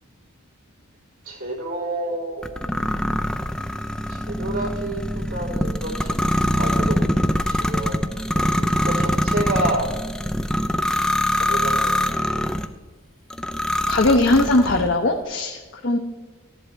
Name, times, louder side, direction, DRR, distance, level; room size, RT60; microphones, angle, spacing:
voice 1, 1.3-2.6 4.1-5.0 5.3-6.1 6.5-7.1 7.5-8.1 8.4-9.9 11.3-12.5, right 2 dB, 80° right, -4 dB, 3.7 m, -29 dB
sound 1, 2.4-12.7 13.3-14.9, left 1 dB, 5° left, 0.4 m, -23 dB
voice 2, 13.9-15.6 15.8-16.0, left 2 dB, 50° left, 2 dB, 0.7 m, -19 dB
15.0 x 11.0 x 3.3 m, 1.4 s
head